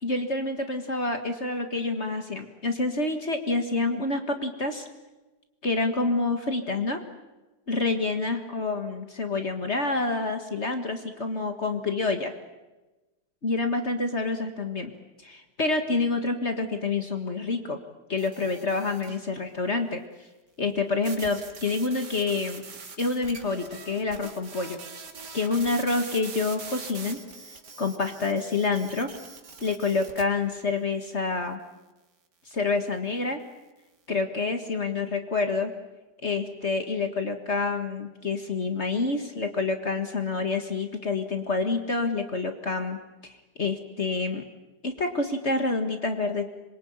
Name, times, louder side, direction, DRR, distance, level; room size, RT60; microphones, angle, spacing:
voice 1, 0.0-4.9 5.6-7.0 7.7-12.3 13.4-14.9 15.2-17.8 18.1-20.0 20.6-22.6 23.0-24.8 25.3-27.2 27.8-29.1 29.6-31.6 32.5-33.4 34.1-35.7 36.2-43.0 43.6-44.4 44.8-46.5, left 3 dB, 40° left, 6 dB, 2.0 m, -27 dB
sound 1, 18.2-19.3 21.0-30.2, right 4 dB, 80° right, 2.8 m, -43 dB
26.0 x 23.0 x 8.8 m, 1.1 s
omnidirectional pair, 1.8 m